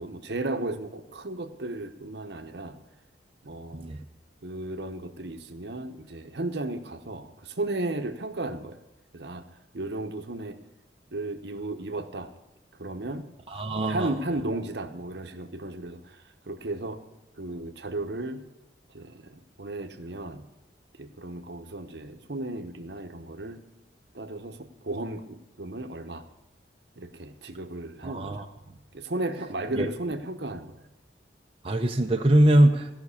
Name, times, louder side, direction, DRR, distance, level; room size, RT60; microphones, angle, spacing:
voice 1, 0.0-2.8 3.4-3.9 4.4-8.8 9.1-9.5 9.7-10.6 11.1-12.3 12.8-13.2 13.9-17.0 17.4-18.4 18.9-20.5 21.0-23.6 24.1-26.2 27.0-28.4 28.9-30.9, right 2 dB, 65° right, 7 dB, 0.9 m, -34 dB
voice 2, 3.7-4.0 13.5-14.2 28.0-28.5 29.8-29.9 31.6-32.9, right 1 dB, 30° right, 2 dB, 0.6 m, -22 dB
16.0 x 6.0 x 8.3 m, 0.98 s
head